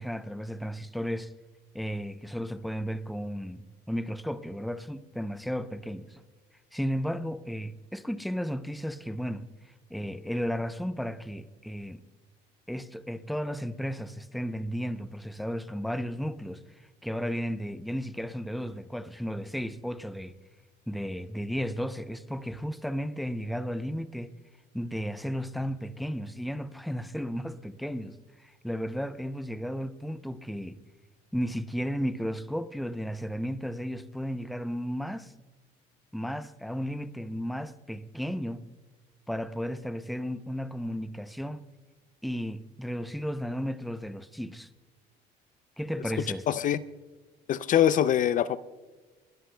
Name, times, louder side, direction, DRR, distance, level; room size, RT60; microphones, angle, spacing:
voice 1, 0.0-1.3 1.7-6.2 6.7-12.0 12.7-20.3 20.9-24.3 24.7-30.8 31.3-35.3 36.1-38.7 39.3-41.7 42.2-44.7 45.8-46.5, equal, ahead, 0.6 m, -34 dB
voice 2, 46.5-46.8 47.5-48.6, left 10 dB, 50° left, 0.4 m, -23 dB
30.0 x 13.0 x 2.2 m
cardioid pair, 110°, 17 cm